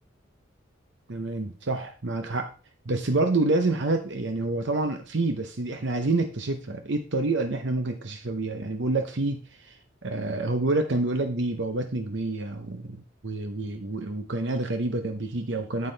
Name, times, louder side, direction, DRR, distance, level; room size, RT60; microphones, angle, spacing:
voice 1, 1.1-2.5 2.9-15.9, right 2 dB, 65° right, 6 dB, 0.8 m, -28 dB
9.4 x 7.6 x 3.3 m, 0.35 s
head